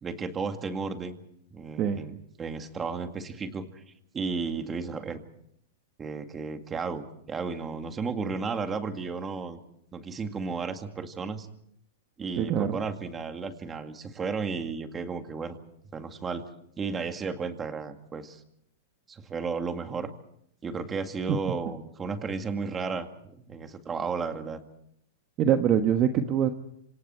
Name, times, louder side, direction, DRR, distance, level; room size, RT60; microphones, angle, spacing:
voice 1, 0.0-1.2 1.5-3.8 4.1-5.2 6.0-9.6 9.9-11.5 12.2-15.6 15.9-16.4 16.8-18.4 19.1-20.1 20.6-24.6, right 5 dB, 15° right, 6 dB, 2.1 m, -33 dB
voice 2, 12.4-12.8 25.4-26.5, right 9 dB, 30° right, 7 dB, 1.3 m, -24 dB
27.0 x 26.5 x 4.5 m, 0.72 s
supercardioid pair, 145°, 0 cm